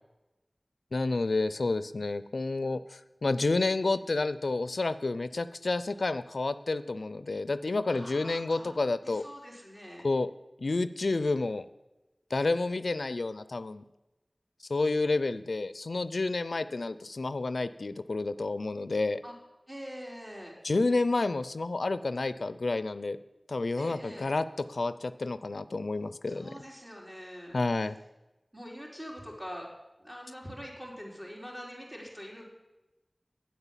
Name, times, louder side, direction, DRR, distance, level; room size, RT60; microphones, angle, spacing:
voice 1, 0.9-9.3 10.0-10.3 10.6-11.7 12.3-13.8 14.7-19.2 20.6-23.2 23.5-26.5 27.5-28.0, left 3 dB, 85° left, 14 dB, 0.4 m, -30 dB
voice 2, 7.8-8.7 9.0-10.1 19.2-19.3 19.7-20.5 23.8-24.3 26.3-27.6 28.5-29.7 30.0-32.4, equal, 20° right, -2 dB, 3.9 m, -44 dB
9.5 x 8.0 x 7.3 m, 1.0 s
wide cardioid pair, 40°, 0 cm